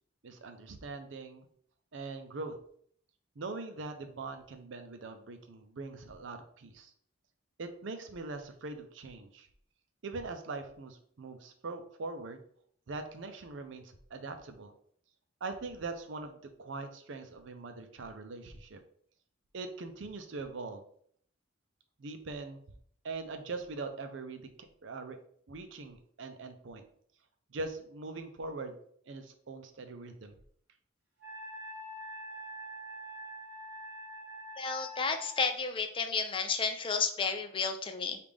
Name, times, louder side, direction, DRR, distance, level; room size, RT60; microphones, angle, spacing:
voice 1, 0.2-1.5 1.9-2.5 3.4-6.9 7.6-9.5 10.0-12.4 12.9-14.7 15.4-18.8 19.5-20.8 22.0-22.6 23.0-24.5 24.8-25.2 25.5-26.8 27.5-28.8 29.1-30.3, right 3 dB, 65° right, 7 dB, 0.5 m, -42 dB
Wind instrument woodwind instrument, 31.2-35.5, equal, 50° right, 1.3 m, -45 dB
voice 2, 34.6-38.2, left 5 dB, 25° left, 6 dB, 0.4 m, -32 dB
5.2 x 2.5 x 3.3 m, 0.62 s
head